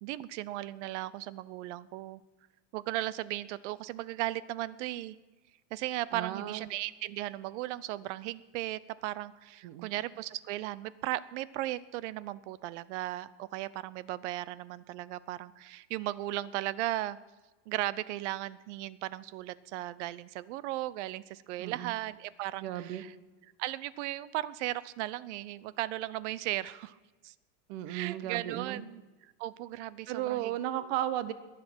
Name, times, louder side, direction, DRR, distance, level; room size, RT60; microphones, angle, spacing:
voice 1, 0.0-2.2 2.7-5.2 5.7-17.2 17.7-23.1 23.6-27.0 27.2-27.3 27.9-29.0 29.4-30.5, right 15 dB, 90° right, 19 dB, 0.7 m, -36 dB
voice 2, 6.1-6.6 9.6-9.9 21.6-21.9 22.6-23.0 27.7-28.8 30.1-31.3, right 12 dB, 65° right, 13 dB, 1.1 m, -35 dB
21.5 x 7.7 x 6.1 m, 1.2 s
cardioid pair, 155°, 34 cm